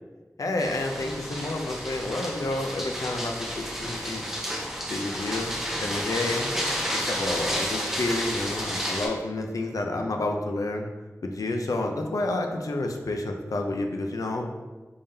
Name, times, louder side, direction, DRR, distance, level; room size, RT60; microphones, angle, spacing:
voice 1, 0.4-4.2 4.9-6.5 6.9-10.9 11.2-14.5, left 2 dB, 85° left, 3 dB, 0.4 m, -30 dB
sound 1, 0.6-9.1, equal, 5° right, 0.7 m, -31 dB
3.5 x 3.5 x 2.7 m, 1.3 s
wide cardioid pair, 45°, 6 cm